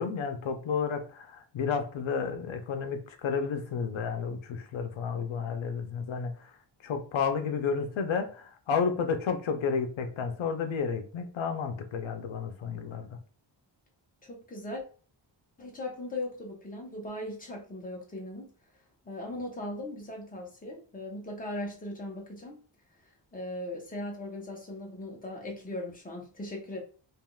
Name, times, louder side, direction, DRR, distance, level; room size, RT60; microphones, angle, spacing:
voice 1, 0.0-6.5 6.8-13.2, left 6 dB, 85° left, 0.6 m, -31 dB
voice 2, 14.2-14.8 15.6-18.5 19.0-22.6 23.3-26.8, left 1 dB, 20° left, 0.8 m, -38 dB
3.5 x 2.4 x 2.2 m
wide cardioid pair, 135°, 46 cm